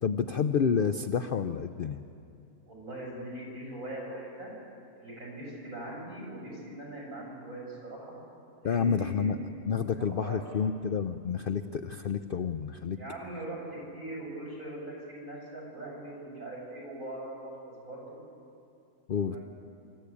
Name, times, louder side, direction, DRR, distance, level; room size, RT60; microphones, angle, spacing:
voice 1, 0.0-2.0 8.6-9.4 9.6-13.0 19.1-19.4, left 6 dB, 85° left, 9 dB, 0.4 m, -29 dB
voice 2, 2.7-4.5 4.9-8.2 8.6-9.6 10.0-10.4 12.9-18.2 19.2-19.4, right 1 dB, 55° right, -4 dB, 7.2 m, -41 dB
25.5 x 13.5 x 8.5 m, 2.6 s
omnidirectional pair, 1.6 m